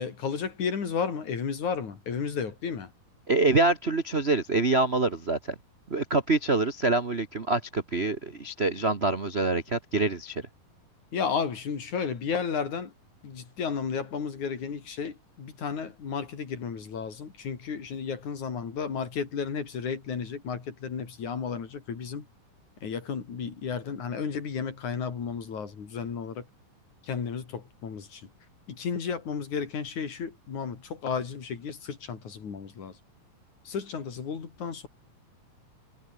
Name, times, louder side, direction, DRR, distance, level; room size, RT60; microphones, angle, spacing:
voice 1, 0.0-2.9 11.1-12.9 13.2-22.3 22.8-26.4 27.1-28.2 28.7-32.9 33.7-34.9, left 6 dB, 60° left, 4.9 m, -33 dB
voice 2, 3.3-5.4 5.9-10.4, right 3 dB, 60° right, 0.6 m, -25 dB
omnidirectional pair, 3.9 m